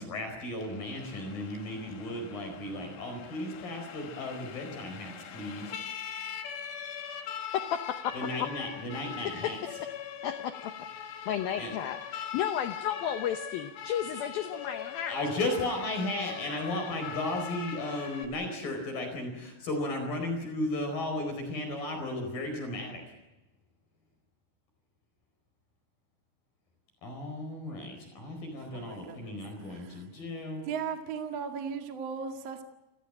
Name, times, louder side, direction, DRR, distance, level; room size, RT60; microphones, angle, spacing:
voice 1, 0.0-5.7 8.1-9.6 11.6-11.7 15.1-23.0 27.0-30.6, left 1 dB, 45° left, 4 dB, 6.1 m, -35 dB
Siren, 0.6-18.3, left 8 dB, 65° left, 3.9 m, -41 dB
voice 2, 7.5-8.0 9.2-9.9 10.2-10.7 11.3-15.2, left 9 dB, 85° left, 9 dB, 2.1 m, -33 dB
voice 3, 28.7-29.4 29.7-30.0 30.6-32.6, right 6 dB, 50° right, 5 dB, 2.1 m, -37 dB
29.0 x 16.0 x 9.0 m, 1.0 s
omnidirectional pair, 5.7 m